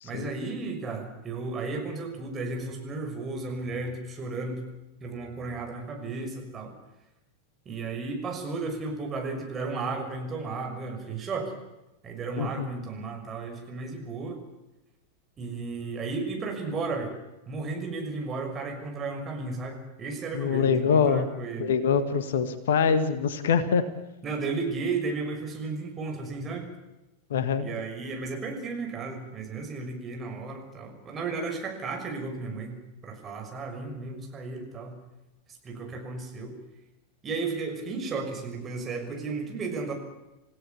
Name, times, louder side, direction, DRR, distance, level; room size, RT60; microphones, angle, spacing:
voice 1, 0.0-4.7 5.0-6.7 7.6-11.5 12.0-14.4 15.4-17.1 17.5-21.7 24.2-26.7 27.6-35.0 35.6-36.5 37.2-39.9, right 3 dB, 25° right, 3 dB, 6.3 m, -34 dB
voice 2, 12.4-12.7 20.3-21.3 21.6-23.9 27.3-27.7, left 6 dB, 60° left, 12 dB, 1.6 m, -24 dB
28.5 x 16.5 x 7.1 m, 0.95 s
figure-of-eight pair, 90°, 0 cm